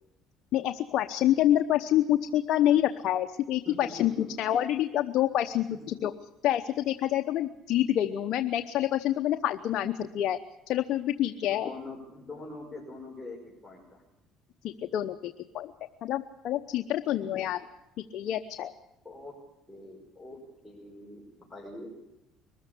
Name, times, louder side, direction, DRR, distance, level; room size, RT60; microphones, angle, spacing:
voice 1, 0.5-6.1 6.4-10.4 10.7-11.7 14.6-15.7 16.0-17.6 18.1-18.7, left 12 dB, 65° left, 7 dB, 0.9 m, -27 dB
voice 2, 3.7-4.5 5.7-6.0 11.5-13.4 13.6-14.0 17.2-17.5 19.0-19.3 19.7-20.4 20.6-21.9, left 2 dB, 10° left, -4 dB, 5.7 m, -44 dB
22.5 x 14.0 x 8.4 m, 0.90 s
supercardioid pair, 95°, 0 cm